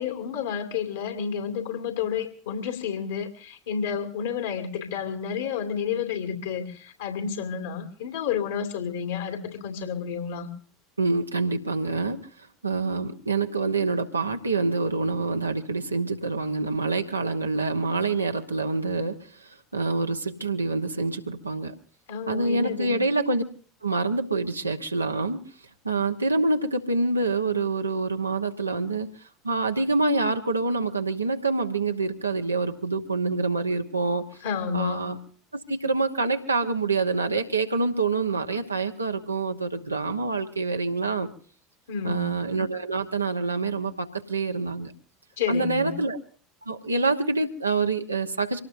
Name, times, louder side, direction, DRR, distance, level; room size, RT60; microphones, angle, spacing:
voice 1, 0.0-10.5 22.1-23.0 34.4-35.0 41.9-42.3 45.4-45.9, left 7 dB, 65° left, 5 dB, 2.4 m, -30 dB
voice 2, 11.0-12.2 12.6-19.2 19.7-21.7 22.3-23.4 23.8-25.4 25.8-29.1 29.4-34.2 34.7-35.2 35.7-41.3 42.0-44.9 45.5-46.2 46.7-48.6, right 3 dB, 85° right, 5 dB, 1.1 m, -26 dB
25.0 x 18.0 x 2.6 m, 0.43 s
figure-of-eight pair, 75°, 0 cm